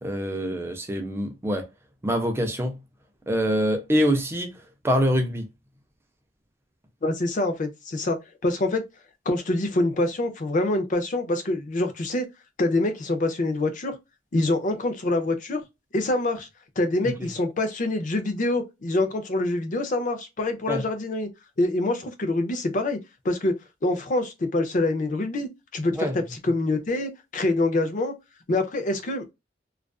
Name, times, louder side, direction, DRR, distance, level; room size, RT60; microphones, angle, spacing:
voice 1, 0.0-1.7 2.0-2.8 3.3-4.5 4.8-5.5 20.7-20.8 26.0-26.2, equal, 15° right, 0.4 m, -25 dB
voice 2, 7.0-8.2 8.4-8.8 9.3-12.3 12.6-14.0 14.3-15.6 15.9-16.5 16.8-21.3 21.6-23.0 23.2-23.5 23.8-28.1 28.5-29.2, left 2 dB, 45° left, 0.5 m, -25 dB
2.4 x 2.3 x 2.2 m
head